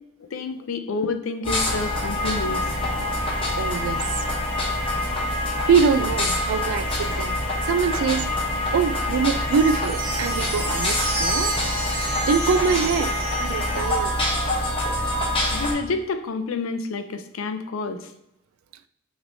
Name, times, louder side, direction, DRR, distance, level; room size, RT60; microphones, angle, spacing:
voice 1, 0.3-2.7 15.5-18.1, left 3 dB, 75° left, 0.5 m, -29 dB
sound 1, 1.4-15.7, left 1 dB, 25° left, 0.9 m, -25 dB
voice 2, 3.6-4.2 5.7-8.3 8.7-11.5 12.2-14.2, right 6 dB, 85° right, 0.3 m, -24 dB
sound 2, 9.5-14.2, right 3 dB, 45° right, 0.9 m, -32 dB
6.1 x 3.1 x 2.6 m
head